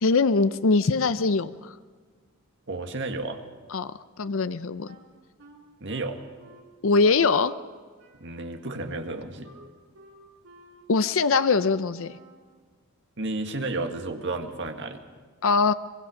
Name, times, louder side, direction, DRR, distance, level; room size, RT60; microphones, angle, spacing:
voice 1, 0.0-1.7 3.7-3.9 4.2-4.9 6.8-7.5 10.9-12.2 15.4-15.7, left 4 dB, 65° left, 13 dB, 0.6 m, -22 dB
voice 2, 2.7-3.4 5.8-6.2 8.2-9.5 13.2-15.0, right 2 dB, 55° right, 5 dB, 1.8 m, -32 dB
Wind instrument woodwind instrument, 4.9-7.7 8.0-12.5, right 1 dB, 85° right, 3.8 m, -53 dB
23.0 x 23.0 x 6.4 m, 1.5 s
head